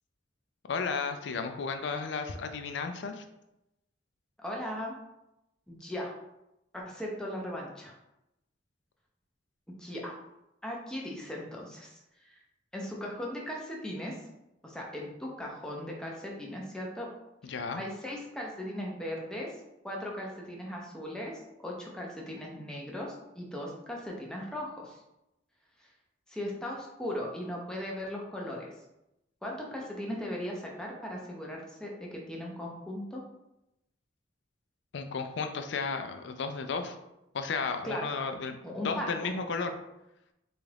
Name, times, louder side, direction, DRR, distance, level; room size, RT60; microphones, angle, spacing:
voice 1, 0.7-3.2 17.4-17.8 34.9-37.0 37.3-38.6 38.8-39.7, left 4 dB, 65° left, 7 dB, 0.4 m, -33 dB
voice 2, 4.4-5.0 5.7-6.1 6.7-8.0 9.8-10.2 10.6-12.4 12.7-14.2 14.6-17.1 17.4-19.5 19.8-25.0 25.8-25.9 26.3-28.7 29.4-33.2 37.8-38.1 38.6-39.3, left 1 dB, 5° left, -3 dB, 0.6 m, -38 dB
3.9 x 2.4 x 3.3 m, 0.90 s
head